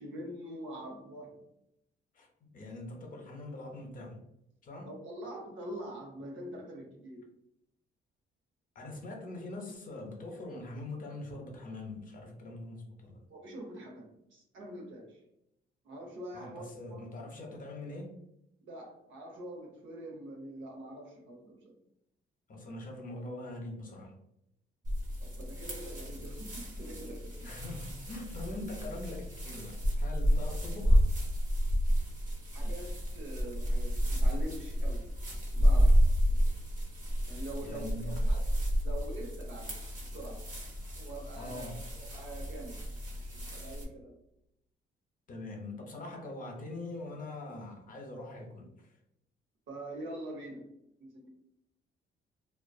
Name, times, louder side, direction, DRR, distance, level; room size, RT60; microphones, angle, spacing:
voice 1, 0.0-1.3 4.8-7.2 13.3-15.2 15.8-17.0 18.6-21.7 25.2-27.5 32.5-35.0 35.4-36.0 36.3-36.5 37.3-38.4 38.8-39.7 40.0-40.5 41.0-41.7 42.0-42.8 43.1-44.1 49.7-50.6 51.0-51.3, right 1 dB, 75° right, 0 dB, 0.8 m, -44 dB
voice 2, 2.1-4.2 4.6-5.0 8.7-13.3 16.3-18.2 22.5-24.2 27.4-31.0 37.6-38.2 41.3-41.9 45.3-49.0, left 2 dB, 45° left, 2 dB, 0.7 m, -43 dB
sound 1, 24.8-43.8, equal, 40° right, 0.7 m, -30 dB
2.4 x 2.2 x 2.3 m, 0.80 s
cardioid pair, 90°, 20 cm